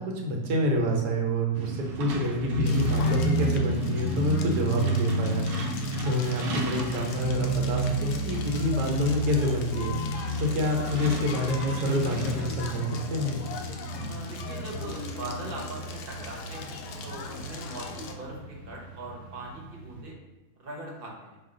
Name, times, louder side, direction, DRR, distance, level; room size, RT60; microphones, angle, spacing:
voice 1, 0.0-5.4 5.7-13.4, equal, 85° right, 1 dB, 1.4 m, -28 dB
Truck, 1.5-20.0, equal, 70° right, 1.1 m, -31 dB
Crackle, 2.7-18.1, left 5 dB, 85° left, 1.1 m, -41 dB
voice 2, 14.0-20.2 20.6-21.4, right 2 dB, 40° right, -3 dB, 0.9 m, -40 dB
sound 1, 14.7-16.0 16.7-17.5, left 2 dB, 50° left, 0.6 m, -46 dB
5.0 x 2.4 x 3.8 m, 1.1 s
omnidirectional pair, 1.7 m